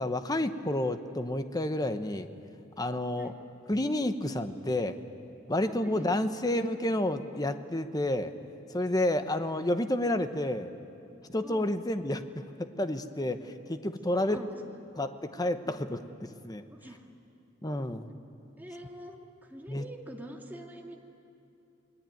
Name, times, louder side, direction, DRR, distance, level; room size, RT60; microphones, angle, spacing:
voice 1, 0.0-2.3 2.8-3.3 3.7-5.0 5.5-8.3 8.7-10.7 11.3-13.4 13.7-14.4 15.0-16.6 17.6-18.1 19.7-19.9, left 1 dB, 20° left, 9 dB, 1.0 m, -30 dB
voice 2, 5.6-6.2 10.0-10.1 11.4-11.7 13.4-13.5 14.1-14.6 16.7-17.1 18.6-21.0, right 1 dB, 10° right, 0 dB, 2.2 m, -46 dB
29.0 x 20.5 x 9.3 m, 2.7 s
head